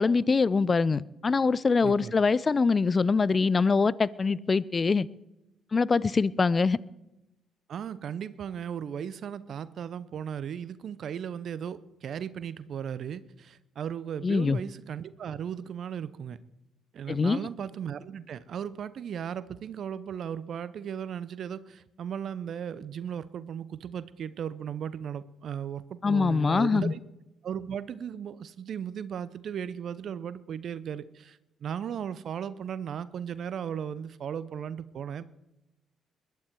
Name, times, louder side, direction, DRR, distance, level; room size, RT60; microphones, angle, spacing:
voice 1, 0.0-5.1 5.7-6.8 14.2-14.6 17.1-17.5 26.0-26.9, left 4 dB, 35° left, 0.6 m, -24 dB
voice 2, 1.8-2.1 7.7-16.4 16.9-27.0 27.4-35.2, right 8 dB, 60° right, 0.8 m, -36 dB
21.5 x 12.0 x 4.7 m
hypercardioid pair, 50°, 0 cm